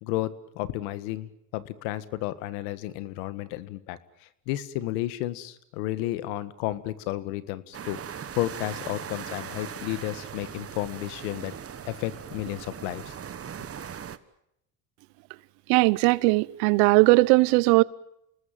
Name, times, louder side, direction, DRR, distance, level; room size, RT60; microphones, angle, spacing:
voice 1, 0.0-11.5 11.9-13.2, left 15 dB, 85° left, 1.7 m, -32 dB
sound 1, 7.7-14.2, right 8 dB, 35° right, 1.4 m, -39 dB
voice 2, 15.7-17.8, right 23 dB, 85° right, 1.0 m, -19 dB
28.0 x 19.5 x 9.2 m
supercardioid pair, 100°, 42 cm